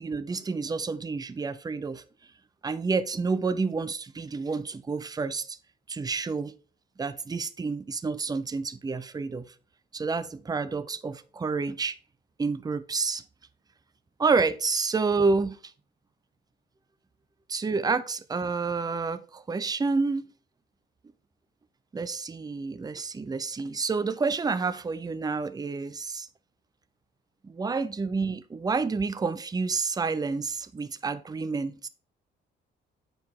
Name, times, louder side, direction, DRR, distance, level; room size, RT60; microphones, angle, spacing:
voice 1, 0.0-2.0 2.6-5.6 5.9-6.6 7.0-9.5 9.9-12.0 12.4-13.2 14.2-15.6 17.5-20.3 21.9-26.3 27.4-31.9, right 4 dB, 20° right, 0.5 m, -29 dB
7.8 x 4.7 x 3.6 m
cardioid pair, 90°, 20 cm